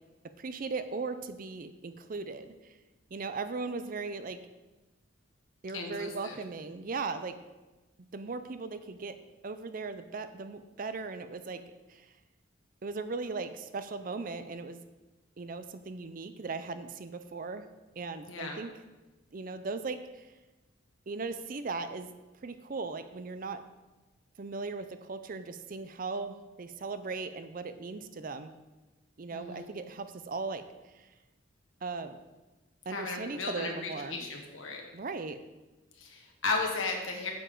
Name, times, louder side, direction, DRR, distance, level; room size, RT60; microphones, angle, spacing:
voice 1, 0.4-2.5 3.1-4.4 5.6-7.4 8.0-9.1 9.4-11.6 11.9-12.1 12.8-14.8 15.4-17.7 18.0-18.7 19.3-20.3 21.1-22.1 22.4-23.6 24.4-28.5 29.2-30.6 30.9-31.1 31.8-32.2 32.9-34.2 34.9-35.4, right 4 dB, 45° right, 11 dB, 0.5 m, -38 dB
voice 2, 5.7-6.4 18.3-18.6 29.3-29.7 32.9-34.8 36.0-37.3, left 3 dB, 90° left, 1 dB, 1.5 m, -35 dB
8.5 x 7.0 x 3.8 m, 1.1 s
head